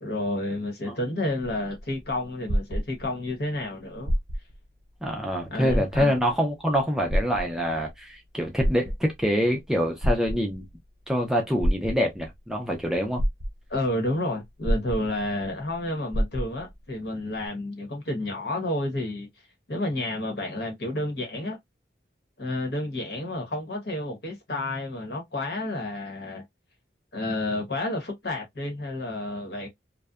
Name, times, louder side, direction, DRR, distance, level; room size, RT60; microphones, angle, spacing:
voice 1, 0.0-4.1 5.5-6.1 13.7-19.3 19.7-21.6 22.4-26.4 27.1-29.7, left 1 dB, 65° left, 1.1 m, -30 dB
sound 1, 1.4-3.4 4.0-4.6 5.1-5.2 5.6-6.3 7.1-7.9 8.4-9.3 10.0-10.8 11.6-12.3 12.8-12.9 13.2-13.9 14.6-15.5 15.7-15.8 16.1-16.7 17.5-17.6, equal, 65° right, 0.6 m, -27 dB
voice 2, 5.0-10.7 11.1-13.2, equal, 5° right, 0.4 m, -25 dB
2.6 x 2.2 x 2.3 m
head